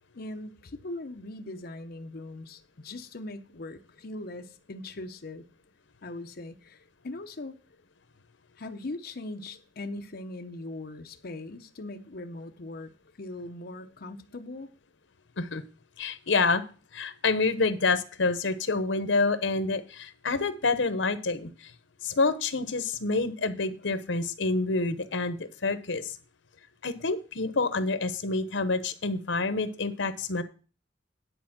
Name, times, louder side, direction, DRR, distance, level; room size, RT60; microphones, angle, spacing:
voice 1, 0.1-5.5 6.0-7.5 8.6-14.7, left 2 dB, 55° left, 0.8 m, -40 dB
voice 2, 16.0-16.6 16.9-21.7 22.0-26.2 26.8-30.4, left 3 dB, 80° left, 1.0 m, -28 dB
10.0 x 4.4 x 7.3 m
head